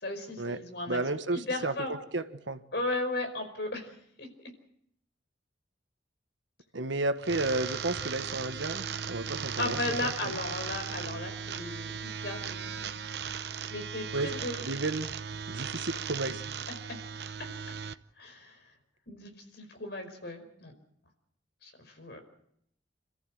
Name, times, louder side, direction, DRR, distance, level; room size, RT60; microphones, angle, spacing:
voice 1, 0.0-1.0 1.3-1.9 2.7-3.9 4.2-4.3 9.6-13.0 13.7-14.6 15.7-16.0 18.2-18.6 19.1-20.7 21.6-22.2, left 2 dB, 65° left, 5 dB, 5.1 m, -36 dB
voice 2, 0.9-2.6 6.7-10.3 14.1-14.3 14.6-15.1 15.5-16.4, right 2 dB, 85° right, 9 dB, 1.5 m, -32 dB
sound 1, 7.2-17.9, right 7 dB, 65° right, 0.9 m, -37 dB
28.0 x 14.0 x 7.7 m, 0.71 s
head